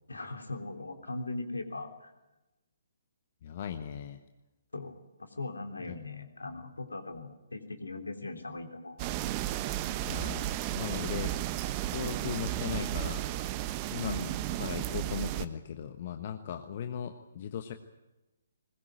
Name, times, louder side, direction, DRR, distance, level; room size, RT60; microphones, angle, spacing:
voice 1, 0.1-2.1 4.7-9.1 14.0-14.3, left 2 dB, 75° left, 5 dB, 3.4 m, -39 dB
voice 2, 3.4-4.2 5.9-6.0 9.9-11.3 11.9-13.2 13.9-14.2 14.6-17.7, left 9 dB, 40° left, 7 dB, 1.2 m, -38 dB
sound 1, 9.0-15.5, right 13 dB, 25° right, 1.0 m, -33 dB
21.0 x 20.5 x 9.3 m, 1.0 s
figure-of-eight pair, 130°, 0 cm